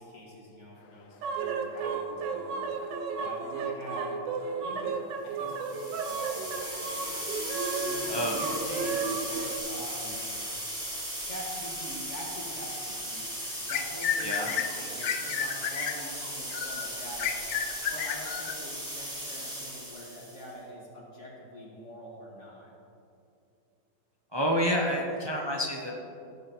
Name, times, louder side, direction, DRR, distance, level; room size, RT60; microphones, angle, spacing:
voice 1, 0.0-4.2 4.6-7.4 7.8-10.4 11.2-13.4 13.7-22.7, left 1 dB, 40° left, -4 dB, 2.2 m, -45 dB
sound 1, 1.2-9.6, right 4 dB, 80° right, 1.4 m, -33 dB
sound 2, 5.5-20.5, equal, 15° right, 2.5 m, -37 dB
sound 3, 13.7-18.5, left 8 dB, 75° left, 0.7 m, -32 dB
voice 2, 24.3-25.9, equal, 30° right, -1 dB, 0.4 m, -28 dB
16.5 x 8.0 x 3.1 m, 2.7 s
omnidirectional pair, 1.9 m